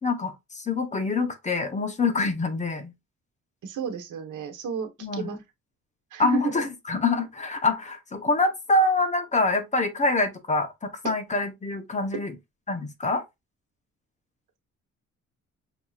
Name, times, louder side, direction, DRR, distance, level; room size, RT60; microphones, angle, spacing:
voice 1, 0.0-2.9 5.0-5.3 6.2-12.3 12.7-13.2, left 3 dB, 25° left, 0.9 m, -25 dB
voice 2, 3.6-5.4 6.1-6.4, right 7 dB, 75° right, 1.2 m, -32 dB
5.9 x 2.8 x 2.4 m
cardioid pair, 120°, 31 cm